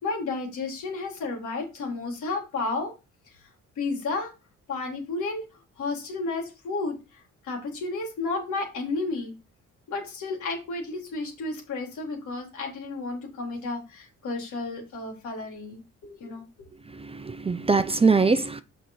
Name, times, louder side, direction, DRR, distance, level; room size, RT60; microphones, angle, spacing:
voice 1, 0.0-2.9 3.8-4.3 4.7-5.4 5.8-7.0 7.4-9.3 9.9-16.5, left 3 dB, 75° left, 3.8 m, -32 dB
voice 2, 16.9-18.6, right 4 dB, 20° right, 0.6 m, -23 dB
6.9 x 5.5 x 5.0 m
cardioid pair, 90°, 30 cm